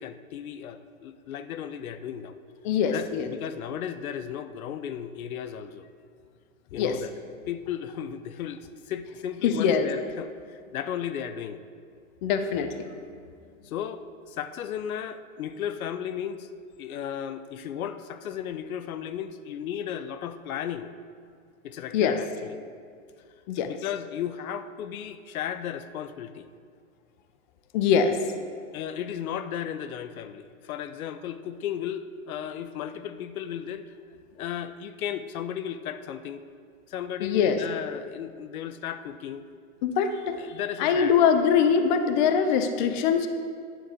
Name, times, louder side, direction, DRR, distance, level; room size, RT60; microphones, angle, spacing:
voice 1, 0.0-2.4 2.9-5.9 6.7-11.6 13.6-16.5 16.8-20.9 21.6-22.6 23.6-26.5 28.7-33.9 34.4-36.4 36.9-39.4 40.4-41.1, left 9 dB, 75° left, 11 dB, 0.6 m, -35 dB
voice 2, 2.6-3.3 6.8-7.0 9.4-9.9 12.2-12.7 21.9-22.2 23.5-23.7 27.7-28.2 37.2-37.6 39.8-40.4 40.8-43.3, left 7 dB, 35° left, 8 dB, 0.5 m, -23 dB
9.8 x 3.7 x 6.2 m, 2.2 s
hypercardioid pair, 140°, 43 cm